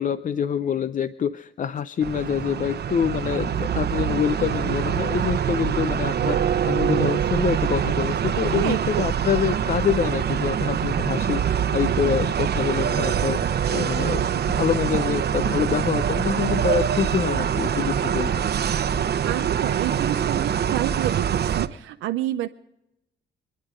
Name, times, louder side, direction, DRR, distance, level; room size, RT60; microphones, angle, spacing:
voice 1, 0.0-18.4, left 8 dB, 40° left, 14 dB, 0.5 m, -26 dB
sound 1, 2.0-21.7, right 8 dB, 55° right, 0.9 m, -24 dB
voice 2, 8.5-9.1 19.3-22.5, right 14 dB, 90° right, 7 dB, 0.6 m, -28 dB
26.5 x 9.9 x 5.1 m, 0.86 s
cardioid pair, 90°, 20 cm